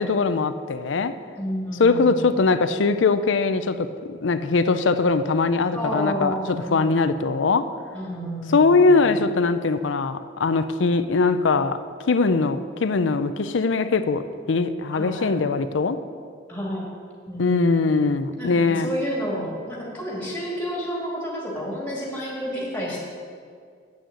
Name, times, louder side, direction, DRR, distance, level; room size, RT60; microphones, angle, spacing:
voice 1, 0.0-1.2 1.8-7.7 8.5-11.8 12.1-16.0 17.4-18.9, left 4 dB, 80° left, 11 dB, 0.5 m, -21 dB
voice 2, 1.4-2.3 5.7-7.2 7.9-9.2 14.9-15.3 16.5-16.9 17.3-18.1 18.4-23.0, equal, 10° left, -3 dB, 2.4 m, -30 dB
8.5 x 6.3 x 8.2 m, 2.1 s
head